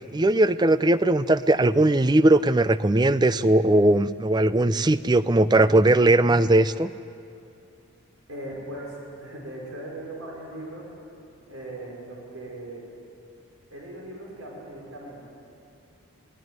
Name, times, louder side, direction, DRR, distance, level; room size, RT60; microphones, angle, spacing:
voice 1, 0.1-6.9, right 2 dB, 20° right, 15 dB, 0.4 m, -19 dB
voice 2, 8.3-10.8 11.5-12.8 13.7-15.3, right 1 dB, 85° right, -3 dB, 5.0 m, -39 dB
22.5 x 17.5 x 9.5 m, 2.6 s
head